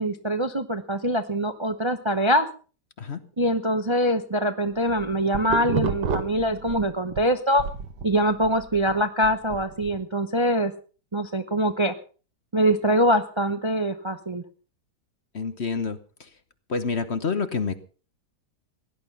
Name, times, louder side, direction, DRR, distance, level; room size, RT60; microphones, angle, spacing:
voice 1, 0.0-2.5 3.4-7.6 8.0-10.7 11.1-11.9 12.5-14.4, equal, 25° right, 9 dB, 0.7 m, -23 dB
sound 1, 4.7-7.2 7.6-10.0, right 5 dB, 90° right, 2.0 m, -30 dB
voice 2, 15.3-16.3 16.7-17.8, left 5 dB, 45° left, 11 dB, 1.2 m, -28 dB
17.5 x 11.5 x 5.5 m, 0.38 s
omnidirectional pair, 1.8 m